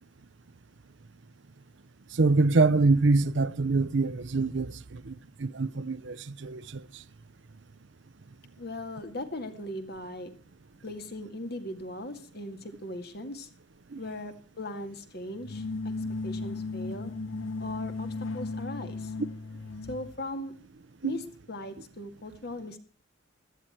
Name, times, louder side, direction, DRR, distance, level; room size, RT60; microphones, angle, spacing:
voice 1, 2.1-7.0 13.9-14.0 21.0-21.2, right 3 dB, 65° right, 0.7 m, -25 dB
voice 2, 8.6-10.3 10.8-13.5 14.0-15.9 16.2-17.1 17.6-19.1 19.9-20.5 21.0-22.8, left 1 dB, 55° left, 2.0 m, -39 dB
sound 1, 15.4-20.1, left 3 dB, 80° left, 0.7 m, -35 dB
16.5 x 12.5 x 4.5 m
head